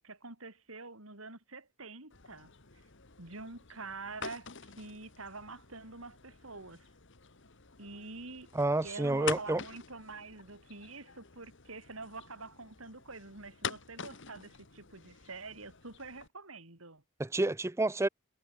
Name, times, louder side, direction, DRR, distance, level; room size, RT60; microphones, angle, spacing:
voice 1, 0.0-2.5 3.2-6.9 7.8-8.5 8.8-17.0, right 3 dB, 75° right, 5.4 m, -46 dB
sound 1, 2.1-16.3, left 6 dB, 60° left, 2.0 m, -46 dB
voice 2, 8.5-9.6 17.2-18.1, right 2 dB, 15° right, 0.5 m, -29 dB
head